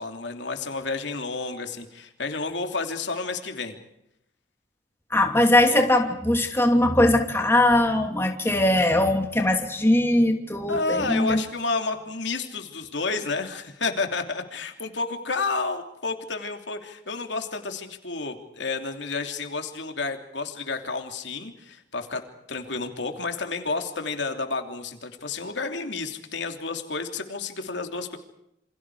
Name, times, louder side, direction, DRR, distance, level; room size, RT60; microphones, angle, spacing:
voice 1, 0.0-3.8 5.7-5.8 10.7-22.2 22.5-28.2, left 3 dB, 65° left, 5 dB, 3.0 m, -30 dB
voice 2, 5.1-11.4, left 1 dB, 15° left, 3 dB, 2.8 m, -20 dB
28.5 x 28.0 x 4.9 m, 0.82 s
head